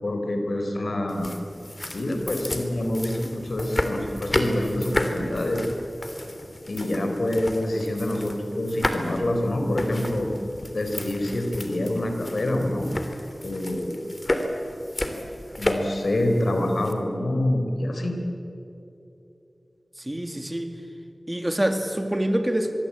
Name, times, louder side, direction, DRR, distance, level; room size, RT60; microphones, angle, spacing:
voice 1, 0.0-1.3 1.9-5.7 6.7-10.4 10.7-12.9 13.4-14.0 15.6-18.1, left 1 dB, 70° left, 4 dB, 4.1 m, -26 dB
sound 1, 1.1-16.9, left 1 dB, 35° left, 2.9 m, -32 dB
voice 2, 20.0-20.7 21.3-22.7, right 1 dB, 20° right, 6 dB, 2.4 m, -26 dB
25.5 x 22.0 x 8.7 m, 2.9 s
wide cardioid pair, 55°, 0 cm